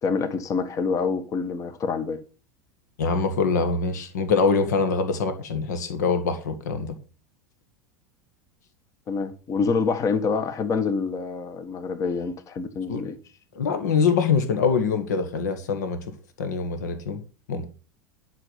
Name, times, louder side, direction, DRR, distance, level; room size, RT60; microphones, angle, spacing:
voice 1, 0.0-2.2 9.1-13.2, left 5 dB, 35° left, 1.4 m, -26 dB
voice 2, 3.0-6.9 12.9-13.0 13.5-16.0 16.4-17.2 17.5-17.7, left 5 dB, 70° left, 1.7 m, -24 dB
11.0 x 5.9 x 5.6 m
figure-of-eight pair, 80°, 10 cm